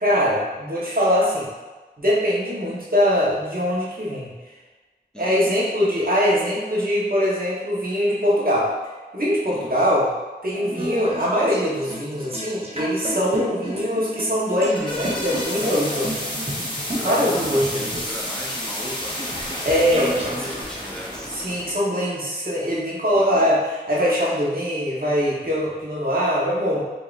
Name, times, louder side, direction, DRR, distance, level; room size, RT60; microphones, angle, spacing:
voice 1, 0.0-1.5 2.0-4.3 5.2-8.7 9.1-10.1 10.4-16.1 16.9-18.0 19.6-20.3 21.3-26.8, equal, 55° right, -6 dB, 1.1 m, -22 dB
voice 2, 5.1-5.6 9.5-9.7 17.0-19.2 19.9-21.3 23.1-23.5, equal, 5° left, -4 dB, 0.6 m, -37 dB
sound 1, 10.5-20.6, right 1 dB, 35° right, 0.8 m, -33 dB
sound 2, 14.4-21.7, left 1 dB, 25° left, 0.9 m, -31 dB
5.2 x 2.8 x 2.5 m, 1.3 s
wide cardioid pair, 40°, 18 cm